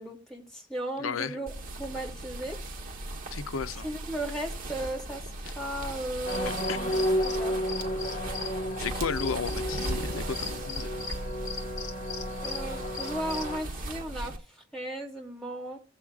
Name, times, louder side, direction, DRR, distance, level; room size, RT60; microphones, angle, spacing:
voice 1, 0.0-1.5 1.8-2.6 3.8-5.2 5.5-7.6 12.4-14.3 14.7-15.8, right 1 dB, 5° left, 2.5 m, -36 dB
voice 2, 1.0-1.4 3.3-3.9 6.7-7.0 8.8-11.0, left 6 dB, 90° left, 0.6 m, -34 dB
sound 1, 1.5-14.4, right 1 dB, 45° right, 1.2 m, -38 dB
sound 2, 6.3-13.6, left 1 dB, 40° left, 1.9 m, -32 dB
17.0 x 7.2 x 2.4 m
head